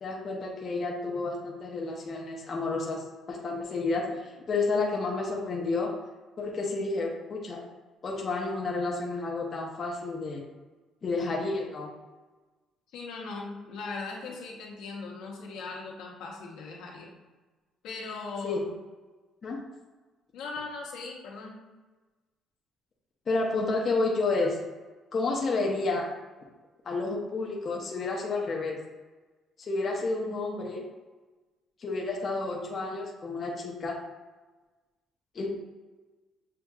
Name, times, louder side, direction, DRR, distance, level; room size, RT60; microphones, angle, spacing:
voice 1, 0.0-4.1 4.5-5.9 6.4-7.6 8.0-10.4 11.0-11.9 18.4-18.6 19.4-19.6 23.3-24.6 25.1-26.1 26.8-28.8 29.7-30.8 31.8-34.0 35.3-35.5, left 3 dB, 30° left, -2 dB, 0.7 m, -30 dB
voice 2, 12.9-17.1 17.8-18.6 20.3-21.6, left 4 dB, 85° left, -2 dB, 1.0 m, -39 dB
6.8 x 2.8 x 2.4 m, 1.3 s
cardioid pair, 160°, 0 cm